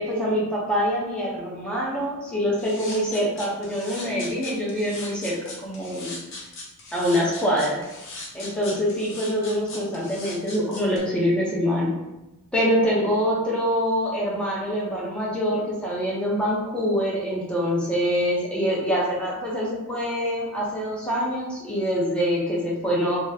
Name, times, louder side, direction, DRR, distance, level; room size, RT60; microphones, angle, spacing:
voice 1, 0.0-6.1 6.9-7.8 8.3-11.9 12.5-23.2, equal, 5° left, -5 dB, 0.8 m, -25 dB
sound 1, 2.6-11.0, left 2 dB, 60° left, 0.8 m, -39 dB
3.5 x 2.2 x 2.8 m, 1.0 s
head